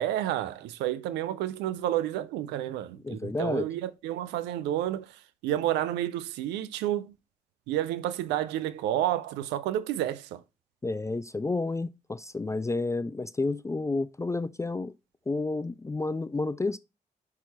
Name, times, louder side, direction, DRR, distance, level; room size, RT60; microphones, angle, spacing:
voice 1, 0.0-7.1 7.7-10.4, right 12 dB, 85° right, 0.4 m, -30 dB
voice 2, 3.0-3.7 10.8-14.9 15.3-16.8, left 3 dB, 15° left, 0.4 m, -30 dB
5.7 x 4.7 x 4.1 m
hypercardioid pair, 40°, 18 cm